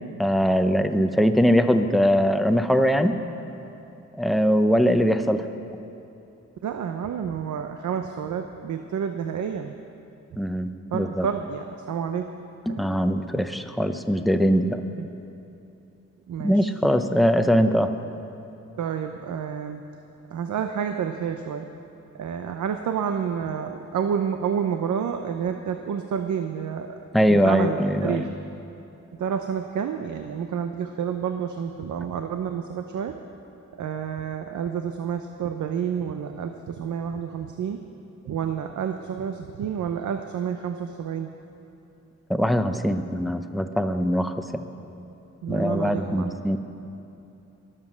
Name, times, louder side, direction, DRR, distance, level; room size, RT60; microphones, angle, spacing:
voice 1, 0.2-3.2 4.1-5.4 10.4-11.3 12.7-14.8 16.4-17.9 27.1-28.3 42.3-44.6 45.5-46.6, equal, ahead, 7 dB, 0.7 m, -21 dB
voice 2, 6.6-9.7 10.9-12.3 12.7-12.8 14.9-15.1 16.3-16.7 18.8-19.8 20.3-21.7 22.1-28.3 29.2-33.2 33.7-37.8 38.3-41.3 45.4-46.3, right 7 dB, 85° right, 6 dB, 0.7 m, -29 dB
22.5 x 7.6 x 6.2 m, 2.9 s
wide cardioid pair, 105°, 29 cm